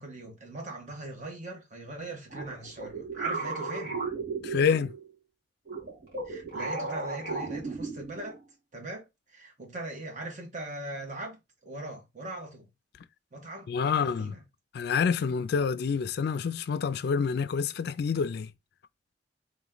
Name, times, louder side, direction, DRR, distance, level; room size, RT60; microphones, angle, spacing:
voice 1, 0.0-4.0 6.2-8.4 8.7-12.7 13.3-14.4, right 2 dB, 45° right, 1.5 m, -41 dB
sound 1, 2.3-5.1 5.7-8.4, right 3 dB, 60° right, 2.2 m, -35 dB
voice 2, 4.4-4.9 13.7-14.3 14.7-18.5, left 6 dB, 65° left, 0.3 m, -27 dB
3.6 x 3.0 x 3.8 m
head